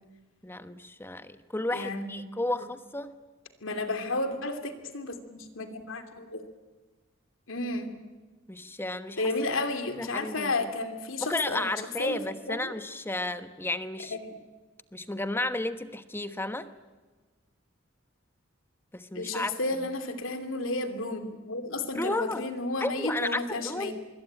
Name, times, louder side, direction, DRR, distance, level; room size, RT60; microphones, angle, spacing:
voice 1, 0.4-3.2 8.5-9.3 10.0-10.7 11.2-14.1 14.9-16.7 18.9-19.5 21.9-22.5 22.8-23.9, left 2 dB, 10° left, 10 dB, 1.1 m, -33 dB
voice 2, 1.7-2.2 2.5-2.6 3.6-6.4 7.5-8.0 9.2-11.7 12.0-12.2 12.5-12.7 14.1-14.4 19.1-23.9, left 2 dB, 85° left, 8 dB, 2.9 m, -32 dB
25.5 x 22.5 x 8.9 m, 1.3 s
head